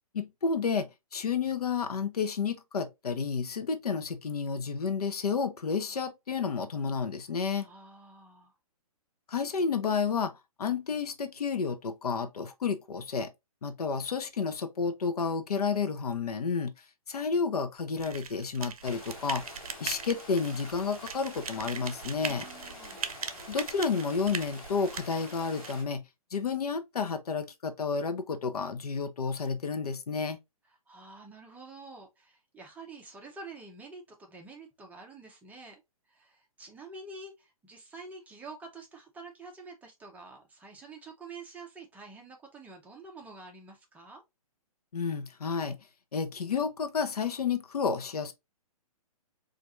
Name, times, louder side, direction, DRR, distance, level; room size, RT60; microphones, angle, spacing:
voice 1, 0.1-7.7 9.3-10.3 10.6-13.3 13.6-16.7 17.1-19.4 19.8-22.4 23.5-26.0 26.3-30.4 44.9-45.8 46.1-48.3, left 5 dB, 85° left, 0.7 m, -31 dB
voice 2, 7.6-8.5 22.2-23.0 30.9-35.8 36.1-44.2, right 3 dB, 10° right, 0.7 m, -48 dB
sound 1, 18.0-25.7, right 7 dB, 70° right, 0.6 m, -40 dB
sound 2, 18.8-25.8, left 1 dB, 20° left, 2.1 m, -47 dB
4.4 x 2.5 x 2.5 m
hypercardioid pair, 140°, 19 cm